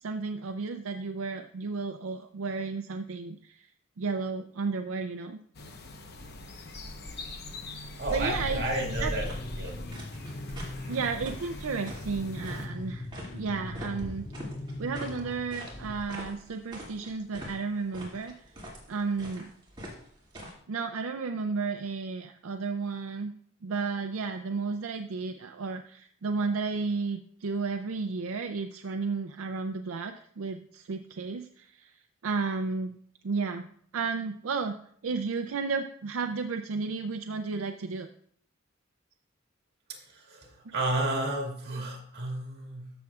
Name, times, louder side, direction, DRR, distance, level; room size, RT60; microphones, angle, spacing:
voice 1, 0.0-3.6 4.0-5.4 8.1-8.6 9.0-9.1 10.9-13.1 13.3-14.2 14.8-18.3 18.9-19.5 20.7-23.3 23.6-31.9 32.2-33.0 33.2-33.7 33.9-34.8 35.0-38.1, right 4 dB, 80° right, 6 dB, 0.5 m, -33 dB
sound 1, 5.5-12.7, left 1 dB, 50° left, 1.0 m, -39 dB
voice 2, 8.0-9.3 9.6-9.8 10.5-10.9 39.9-42.9, right 1 dB, 50° right, 0 dB, 2.1 m, -32 dB
sound 2, 8.1-16.0, left 2 dB, 35° left, 0.6 m, -41 dB
sound 3, 8.9-20.5, equal, 25° right, 2.4 m, -45 dB
14.0 x 7.0 x 2.4 m, 0.63 s
head